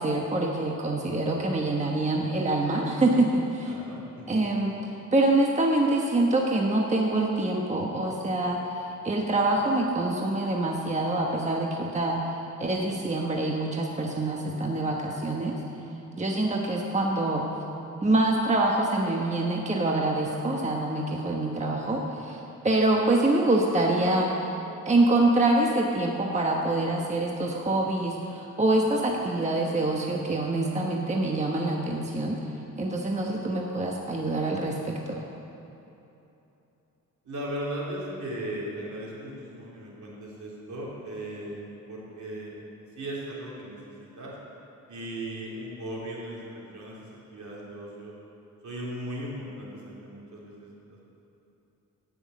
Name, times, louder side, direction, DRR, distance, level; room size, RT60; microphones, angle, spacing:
voice 1, 0.0-3.7 4.3-4.7 5.1-12.2 12.6-15.5 16.2-17.4 18.0-24.3 24.9-32.4 32.8-35.2, right 2 dB, 20° right, -1 dB, 1.1 m, -25 dB
voice 2, 3.7-4.4 37.2-42.6 43.0-44.3 44.9-48.1 48.6-50.7, right 1 dB, 70° right, -5 dB, 3.5 m, -37 dB
16.0 x 6.4 x 8.4 m, 2.9 s
wide cardioid pair, 140°, 31 cm